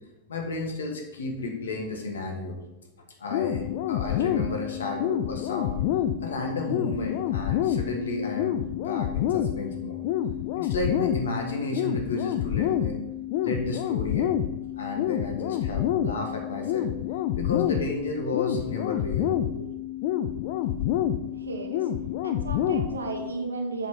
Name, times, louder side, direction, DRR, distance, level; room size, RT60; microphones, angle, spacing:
voice 1, 0.3-2.6 3.2-5.9 6.2-8.6 8.8-10.0 10.6-13.0 13.4-14.3 14.8-16.9 17.4-19.7 21.1-21.2, left 3 dB, 65° left, 2 dB, 1.4 m, -32 dB
sound 1, 3.3-23.3, left 11 dB, 50° left, 0.4 m, -28 dB
voice 2, 21.4-21.9 22.2-23.9, right 3 dB, 75° right, 4 dB, 1.1 m, -34 dB
7.6 x 5.2 x 4.4 m, 0.95 s
figure-of-eight pair, 90°, 0 cm